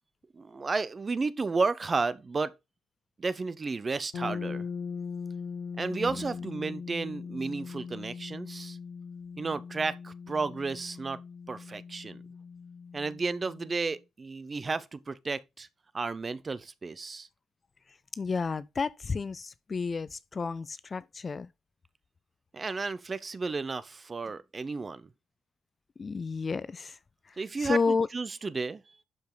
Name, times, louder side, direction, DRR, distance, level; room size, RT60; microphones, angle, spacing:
voice 1, 0.3-2.5 3.2-4.7 5.8-8.8 9.4-11.2 11.5-12.2 12.9-15.7 15.9-17.3 22.5-25.1 27.4-29.0, right 4 dB, 20° right, 0.6 m, -32 dB
sound 1, 4.1-13.9, left 5 dB, 60° left, 2.0 m, -40 dB
voice 2, 17.9-21.5 26.0-27.0 27.2-28.1, left 4 dB, 25° left, 0.4 m, -31 dB
11.5 x 5.3 x 3.8 m
cardioid pair, 165°, 0 cm